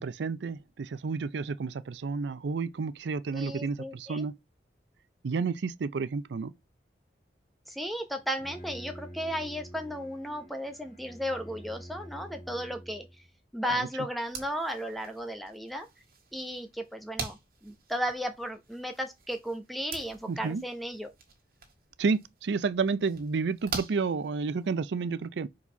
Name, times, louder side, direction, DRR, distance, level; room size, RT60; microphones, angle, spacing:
voice 1, 0.0-4.4 5.2-6.5 13.7-13.9 20.3-20.6 22.0-25.5, right 4 dB, 85° right, 0.5 m, -31 dB
voice 2, 3.3-4.2 7.7-13.0 13.5-15.9 16.3-17.4 17.6-21.1, equal, ahead, 0.9 m, -35 dB
Bowed string instrument, 8.2-13.3, equal, 50° left, 2.0 m, -47 dB
sound 1, 14.2-24.8, right 4 dB, 55° right, 1.8 m, -45 dB
4.7 x 4.1 x 5.6 m
head